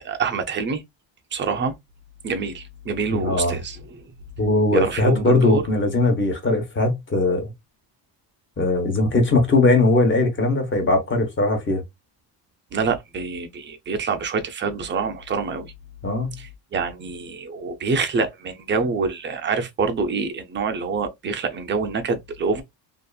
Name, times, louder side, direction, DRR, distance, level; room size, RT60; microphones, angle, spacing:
voice 1, 0.2-0.8 1.3-1.7 2.2-4.0 4.7-5.6 12.7-15.7 16.4-22.6, right 4 dB, 30° right, 0.4 m, -26 dB
voice 2, 3.1-3.6 4.4-7.5 8.6-11.8 16.0-16.3, left 2 dB, 25° left, 1.0 m, -20 dB
2.7 x 2.5 x 2.3 m
cardioid pair, 135°, 42 cm